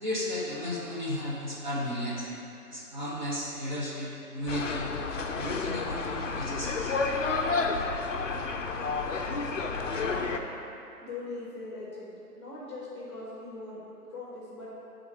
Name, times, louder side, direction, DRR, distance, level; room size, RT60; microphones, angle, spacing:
voice 1, 0.0-2.3 2.7-4.9 5.3-7.2, left 1 dB, 30° right, -7 dB, 0.8 m, -34 dB
sound 1, 4.5-10.4, left 4 dB, 55° left, 0.5 m, -30 dB
voice 2, 10.1-10.5 11.0-13.8 14.1-14.7, left 3 dB, 20° left, -7 dB, 1.0 m, -41 dB
8.1 x 3.8 x 4.5 m, 2.8 s
figure-of-eight pair, 140°, 47 cm